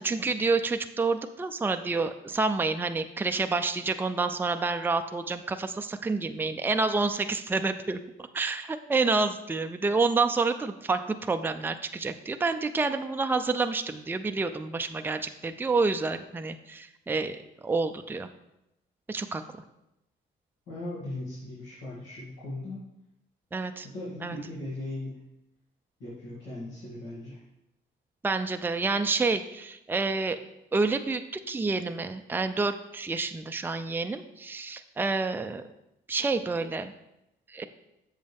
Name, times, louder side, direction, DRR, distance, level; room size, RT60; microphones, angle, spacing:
voice 1, 0.0-8.0 8.3-18.3 19.1-19.4 23.5-23.9 24.2-24.4 28.2-30.4 30.7-35.6 36.1-36.9 37.5-37.6, right 3 dB, 10° right, 7 dB, 0.4 m, -28 dB
voice 2, 20.7-22.8 23.9-25.2 26.0-27.4, left 1 dB, 70° left, -8 dB, 2.5 m, -38 dB
7.8 x 6.4 x 3.5 m, 0.88 s
cardioid pair, 90°, 20 cm